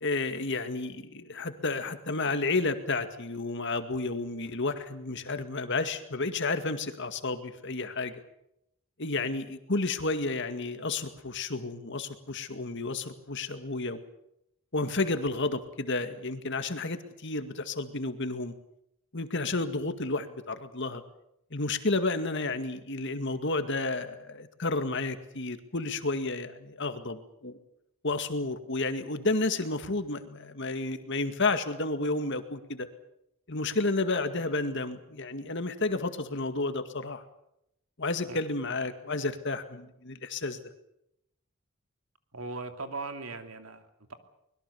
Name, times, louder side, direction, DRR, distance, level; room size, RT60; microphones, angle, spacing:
voice 1, 0.0-8.1 9.0-14.0 14.7-18.5 19.1-21.0 21.5-27.6 28.0-32.9 33.5-37.2 38.0-40.6, left 3 dB, 55° left, 9 dB, 2.1 m, -31 dB
voice 2, 42.3-44.1, right 3 dB, 75° right, 7 dB, 2.8 m, -39 dB
24.5 x 21.5 x 7.1 m, 0.79 s
head